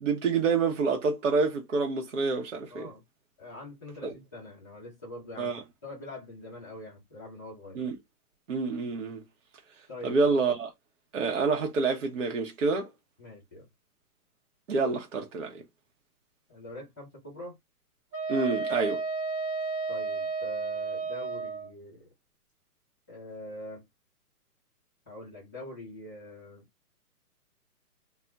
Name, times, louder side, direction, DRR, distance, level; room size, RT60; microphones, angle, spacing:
voice 1, 0.0-2.9 4.0-4.1 5.4-5.6 7.8-7.9 8.5-9.2 10.0-10.7 11.1-12.9 14.7-15.5 18.3-19.0, right 4 dB, 55° right, 0.7 m, -27 dB
voice 2, 2.7-3.0 3.4-7.8 9.9-10.3 13.2-13.7 16.5-17.6 19.9-22.1 23.1-23.8 25.1-26.6, left 1 dB, 10° left, 0.7 m, -44 dB
Wind instrument woodwind instrument, 18.1-21.7, right 4 dB, 20° right, 0.8 m, -32 dB
2.3 x 2.0 x 3.7 m
hypercardioid pair, 175°, 46 cm